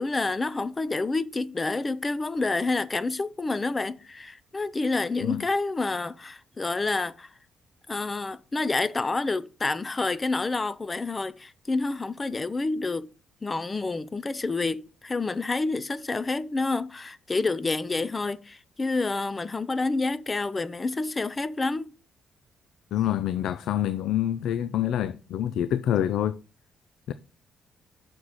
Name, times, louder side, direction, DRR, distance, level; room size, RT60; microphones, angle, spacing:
voice 1, 0.0-7.3 7.9-13.1 13.4-21.9, left 3 dB, 25° left, 0.5 m, -28 dB
voice 2, 22.9-26.4 27.1-27.2, left 11 dB, 80° left, 0.3 m, -26 dB
6.3 x 6.1 x 4.1 m
cardioid pair, 90°, 0 cm